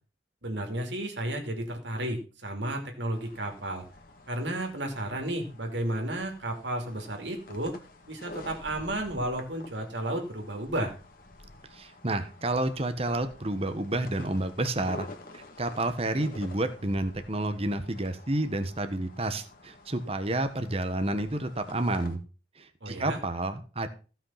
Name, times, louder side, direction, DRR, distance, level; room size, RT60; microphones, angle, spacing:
voice 1, 0.4-3.8 4.3-7.7 8.1-10.9 22.8-23.2, right 1 dB, 75° right, 3 dB, 2.7 m, -32 dB
sound 1, 3.1-22.2, left 2 dB, 50° left, 2.0 m, -49 dB
voice 2, 11.7-15.1 15.3-22.2 22.6-23.9, right 1 dB, 35° right, 9 dB, 1.2 m, -30 dB
15.5 x 5.9 x 5.7 m, 0.36 s
head